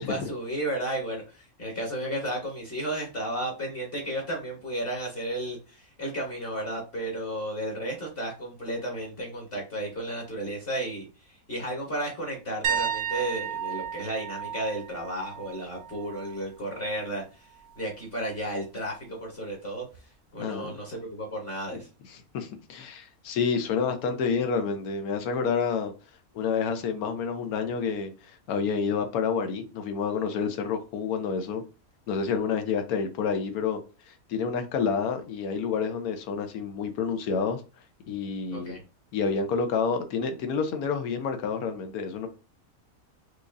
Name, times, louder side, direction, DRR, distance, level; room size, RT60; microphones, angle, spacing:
voice 1, 0.0-17.5 17.8-19.8 20.3-21.9 38.5-38.8, right 1 dB, 45° left, 1.3 m, -33 dB
sound 1, 12.6-16.4 16.7-17.1 19.9-20.0, right 8 dB, 75° right, 1.0 m, -33 dB
voice 2, 20.4-20.8 21.7-21.8 22.1-25.9 26.3-31.6 32.1-33.8 34.1-37.6 38.1-38.8 39.1-42.3, left 5 dB, 90° left, 1.2 m, -29 dB
4.8 x 2.5 x 2.5 m
omnidirectional pair, 1.5 m